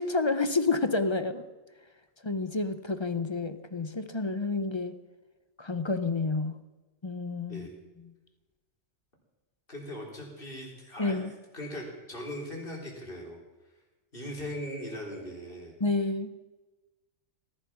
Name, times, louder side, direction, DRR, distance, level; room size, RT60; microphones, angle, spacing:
voice 1, 0.0-1.5 2.2-5.0 5.6-6.6 7.0-7.7 11.0-11.3 15.8-16.3, left 3 dB, 30° left, 11 dB, 0.6 m, -29 dB
voice 2, 9.7-11.2 11.5-13.4 14.1-15.7, equal, 45° left, -1 dB, 4.1 m, -39 dB
18.5 x 12.0 x 6.0 m, 1.2 s
omnidirectional pair, 1.3 m